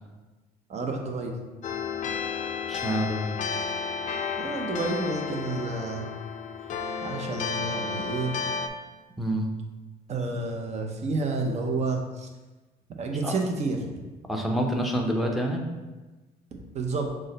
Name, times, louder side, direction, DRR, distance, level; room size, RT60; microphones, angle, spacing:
voice 1, 0.7-1.4 4.4-6.1 7.0-8.3 10.1-12.3 13.0-13.8 16.5-17.1, right 3 dB, 40° right, 3 dB, 0.7 m, -30 dB
sound 1, 1.6-8.7, left 6 dB, 50° left, 0.5 m, -32 dB
voice 2, 2.7-3.3 9.2-9.5 13.2-13.4 14.3-15.6, equal, ahead, 1 dB, 0.6 m, -27 dB
6.2 x 2.2 x 3.9 m, 1.2 s
cardioid pair, 110°, 17 cm